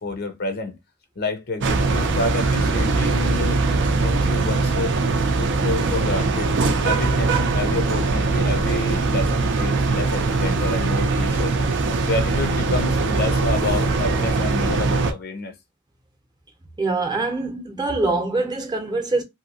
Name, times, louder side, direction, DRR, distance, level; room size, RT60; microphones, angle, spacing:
voice 1, 0.0-0.7 1.2-3.6 4.0-5.0 5.4-6.5 6.8-11.6 12.0-15.5 17.6-17.7, left 3 dB, 50° left, 0.6 m, -28 dB
sound 1, 1.6-15.1, right 3 dB, 60° right, 0.5 m, -21 dB
voice 2, 16.8-19.2, right 3 dB, 20° right, 0.7 m, -24 dB
2.8 x 2.7 x 2.7 m
head